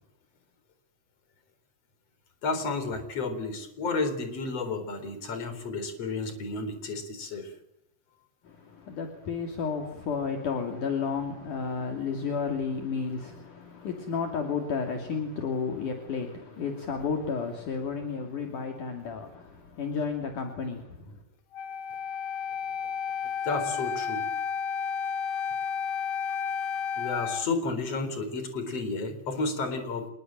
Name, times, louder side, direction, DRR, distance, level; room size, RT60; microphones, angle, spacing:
voice 1, 2.4-7.5 23.4-24.2 27.0-30.1, left 3 dB, 40° left, 5.0 m, -32 dB
voice 2, 8.4-21.2, left 5 dB, 55° left, 4.1 m, -32 dB
Wind instrument woodwind instrument, 21.5-27.5, left 6 dB, 85° left, 3.6 m, -32 dB
27.5 x 21.5 x 7.7 m
omnidirectional pair, 4.5 m